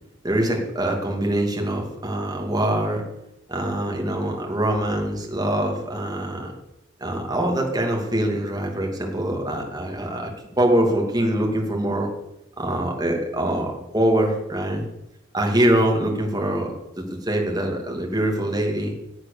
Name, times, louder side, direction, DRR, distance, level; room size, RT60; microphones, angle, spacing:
voice 1, 0.2-3.0 3.5-6.5 7.0-10.3 10.6-12.1 12.6-14.8 15.3-16.7 17.0-19.0, right 1 dB, 20° right, 0 dB, 2.6 m, -23 dB
16.0 x 8.3 x 6.8 m, 0.87 s
head